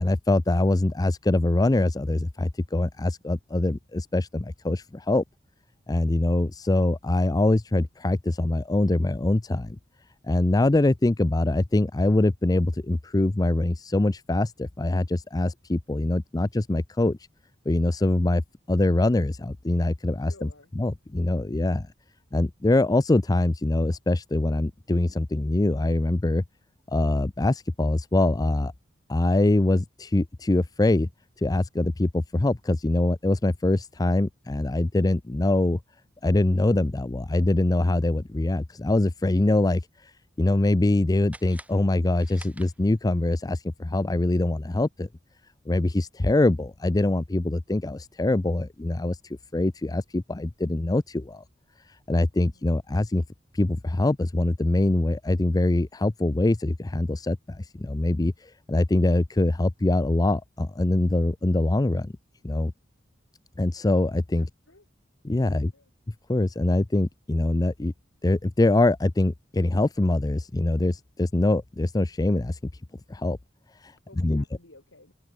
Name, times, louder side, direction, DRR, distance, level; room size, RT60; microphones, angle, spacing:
voice 1, 0.0-5.2 5.9-9.8 10.2-17.2 17.7-18.4 18.7-20.3 20.8-21.9 22.3-26.4 26.9-28.7 29.1-31.1 31.4-35.8 36.2-45.1 45.7-51.4 51.8-53.2 53.5-62.1 62.4-62.7 63.6-64.4 65.2-65.7 66.3-67.9 68.2-72.6 73.1-73.4 73.7-74.4, left 2 dB, 20° left, 0.5 m, -24 dB
voice 2, 20.2-20.7 52.3-52.8 64.3-64.9 65.5-65.9 74.1-75.1, left 2 dB, 85° left, 6.4 m, -53 dB
sound 1, 41.3-43.2, right 2 dB, 10° right, 2.9 m, -49 dB
open air
head